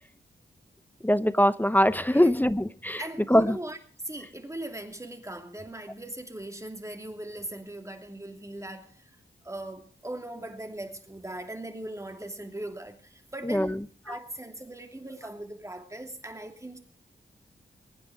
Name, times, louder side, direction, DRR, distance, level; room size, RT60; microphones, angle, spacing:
voice 1, 1.0-3.0 3.3-3.6 13.4-13.8, left 1 dB, 10° left, 0.7 m, -22 dB
voice 2, 3.0-3.8 4.0-9.1 9.4-13.8 14.1-16.8, right 1 dB, 15° right, 2.7 m, -39 dB
22.5 x 9.6 x 4.8 m
cardioid pair, 70°, 20 cm